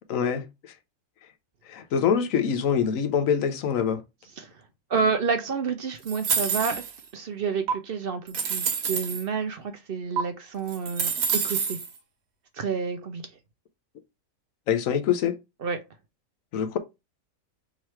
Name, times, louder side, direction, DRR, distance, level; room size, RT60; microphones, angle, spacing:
voice 1, 0.1-0.5 1.7-4.0 14.7-15.4 16.5-16.8, left 7 dB, 70° left, 1.1 m, -24 dB
voice 2, 4.9-6.9 7.1-11.8 12.5-13.3 15.6-15.8, right 5 dB, 55° right, 0.7 m, -29 dB
sound 1, 6.1-7.0 7.7-7.8 8.3-9.2 10.2-10.3 10.7-11.9, right 6 dB, 85° right, 1.4 m, -27 dB
3.7 x 3.1 x 4.3 m
omnidirectional pair, 1.5 m